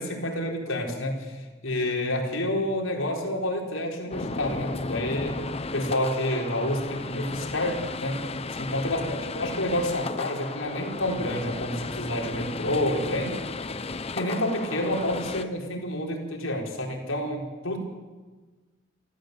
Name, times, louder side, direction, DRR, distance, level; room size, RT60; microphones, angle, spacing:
voice 1, 0.0-5.4 5.7-8.2 8.5-13.4 14.1-17.8, left 1 dB, 90° left, 0 dB, 4.4 m, -29 dB
sound 1, 4.1-15.4, left 3 dB, 30° left, 0.8 m, -34 dB
26.5 x 14.0 x 8.1 m, 1.3 s
head